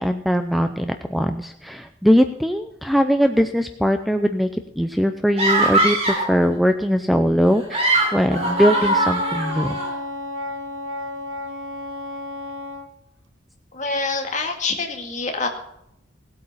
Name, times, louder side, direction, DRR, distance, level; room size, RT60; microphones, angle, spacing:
voice 1, 0.0-4.5 4.8-9.8, equal, ahead, 7 dB, 0.5 m, -20 dB
sound 1, 5.4-6.3 7.5-9.9, right 1 dB, 30° right, 4.2 m, -21 dB
Wind instrument woodwind instrument, 8.3-12.9, left 1 dB, 85° right, 1.2 m, -32 dB
voice 2, 13.7-15.5, left 3 dB, 40° left, 2 dB, 2.1 m, -26 dB
17.5 x 8.6 x 5.7 m, 0.79 s
head